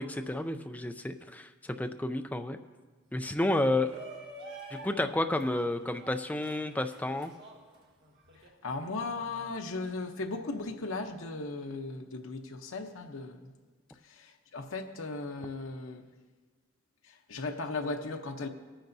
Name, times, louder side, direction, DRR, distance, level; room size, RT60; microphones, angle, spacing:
voice 1, 0.0-2.6 3.1-3.9 4.7-7.3, left 1 dB, 10° left, 7 dB, 0.4 m, -31 dB
Shout, 3.4-8.5, right 2 dB, 55° right, 1.5 m, -48 dB
voice 2, 8.6-13.5 14.0-16.0 17.1-18.5, left 3 dB, 85° left, 4 dB, 0.8 m, -37 dB
20.5 x 10.0 x 2.7 m, 1.4 s
head